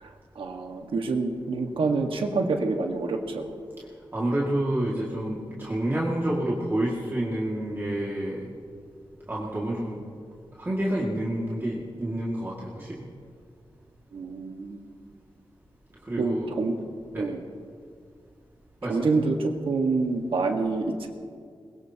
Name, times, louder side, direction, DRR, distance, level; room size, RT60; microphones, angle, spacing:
voice 1, 0.0-3.6 14.1-14.8 16.2-16.7 17.1-17.4 18.9-21.1, right 3 dB, 85° right, 3 dB, 1.6 m, -27 dB
voice 2, 4.1-8.5 9.3-10.0 10.5-13.1 16.0-16.5 17.1-17.3 18.8-19.1, right 1 dB, 25° right, -6 dB, 2.2 m, -28 dB
21.5 x 21.5 x 2.9 m, 2.2 s
wide cardioid pair, 115°, 9 cm